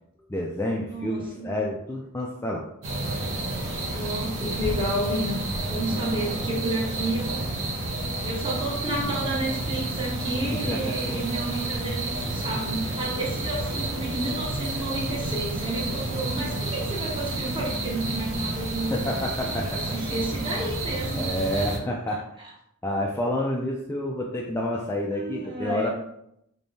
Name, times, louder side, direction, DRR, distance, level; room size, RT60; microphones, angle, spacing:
voice 1, 0.3-2.7 5.9-6.4 10.5-11.1 18.9-19.8 21.1-22.3 22.8-25.9, left 1 dB, 10° left, -1 dB, 0.3 m, -29 dB
voice 2, 0.9-1.5 3.9-5.4 5.7-7.6 8.2-19.0 19.5-21.7 25.1-25.9, right 1 dB, 20° right, -3 dB, 1.0 m, -31 dB
sound 1, 2.8-21.8, right 2 dB, 60° right, 0.9 m, -30 dB
3.5 x 3.3 x 2.7 m, 0.76 s
head